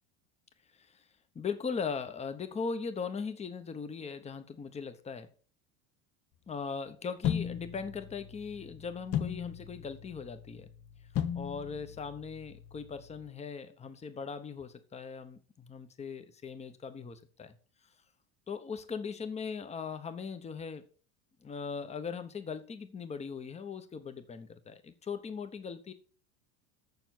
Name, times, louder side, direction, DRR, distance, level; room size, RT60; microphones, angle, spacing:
voice 1, 1.3-5.3 6.5-10.7 11.3-17.5 18.5-20.9 21.4-25.9, left 5 dB, 20° left, 1.0 m, -39 dB
sound 1, 7.2-13.3, left 9 dB, 45° left, 0.9 m, -37 dB
7.0 x 6.8 x 6.1 m
supercardioid pair, 135°, 34 cm